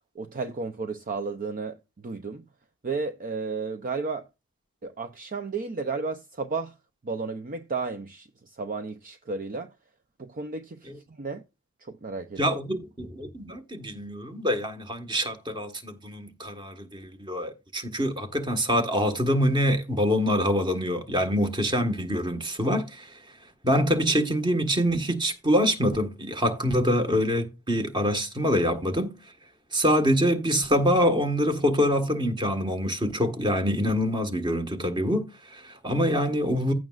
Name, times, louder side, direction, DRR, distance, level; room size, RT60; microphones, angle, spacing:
voice 1, 0.1-2.5 2.8-4.3 4.8-6.8 7.0-9.7 10.2-11.4 11.8-12.6, right 4 dB, 40° right, 0.6 m, -33 dB
voice 2, 12.4-23.2 23.6-29.1 29.7-36.7, equal, 20° right, 1.4 m, -25 dB
15.5 x 6.1 x 2.4 m
head